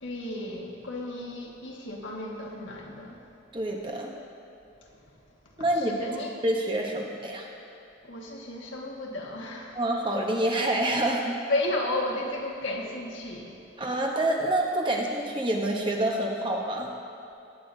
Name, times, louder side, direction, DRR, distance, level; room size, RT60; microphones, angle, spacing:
voice 1, 0.0-3.2 4.9-5.0 5.8-6.3 8.0-9.8 11.5-13.5, left 1 dB, 75° left, -1 dB, 1.6 m, -33 dB
voice 2, 3.5-4.1 5.6-6.0 6.4-7.5 9.7-11.4 13.8-16.9, right 1 dB, 25° right, 0 dB, 0.9 m, -27 dB
19.5 x 8.6 x 2.7 m, 2.7 s
head